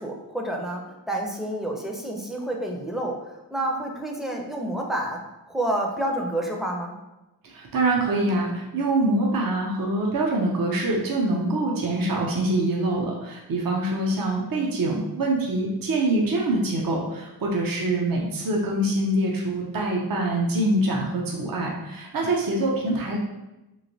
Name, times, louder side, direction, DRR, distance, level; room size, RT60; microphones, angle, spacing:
voice 1, 0.0-7.0, right 1 dB, ahead, 0 dB, 0.4 m, -29 dB
voice 2, 7.4-23.2, right 2 dB, 60° right, -1 dB, 0.6 m, -25 dB
3.1 x 2.5 x 2.7 m, 0.99 s
wide cardioid pair, 55°, 39 cm